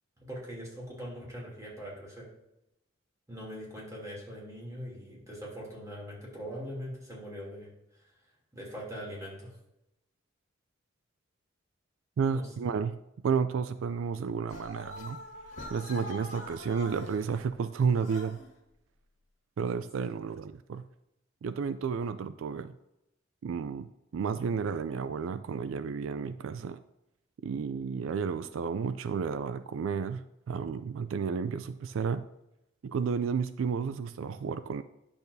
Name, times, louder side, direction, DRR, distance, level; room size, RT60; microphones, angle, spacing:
voice 1, 0.2-2.3 3.3-7.7 8.5-9.5 12.3-12.7, equal, 15° right, -4 dB, 2.8 m, -42 dB
voice 2, 12.2-15.2 15.7-18.4 19.6-20.8 21.4-22.7 23.4-26.8 27.4-30.2 30.5-32.3 32.8-34.8, right 6 dB, 80° right, 12 dB, 0.3 m, -32 dB
sound 1, 14.5-17.2 17.9-18.5, left 1 dB, 85° left, 1.9 m, -43 dB
9.8 x 6.8 x 2.7 m, 0.87 s
head